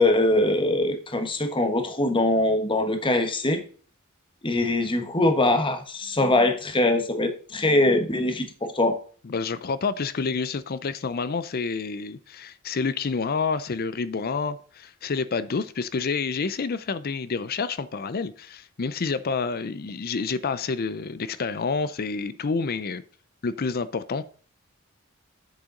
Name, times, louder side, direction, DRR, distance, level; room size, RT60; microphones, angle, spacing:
voice 1, 0.0-3.6 4.4-9.0, left 2 dB, 25° left, 1.1 m, -22 dB
voice 2, 9.2-23.0 23.4-24.2, left 4 dB, 45° left, 0.5 m, -28 dB
8.0 x 6.7 x 3.8 m
head